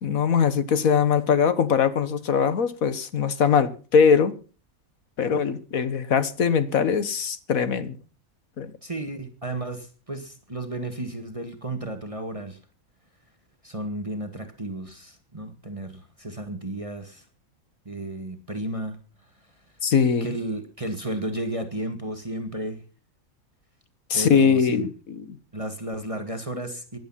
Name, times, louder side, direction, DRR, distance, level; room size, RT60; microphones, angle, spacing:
voice 1, 0.0-4.3 5.2-8.0 8.6-8.7 19.8-20.3 24.1-25.2, left 6 dB, 80° left, 1.8 m, -21 dB
voice 2, 8.8-12.6 13.6-17.2 17.8-19.0 20.2-22.8 24.1-24.9 25.5-27.0, right 1 dB, 25° right, 1.8 m, -33 dB
17.0 x 11.5 x 5.7 m
omnidirectional pair, 1.5 m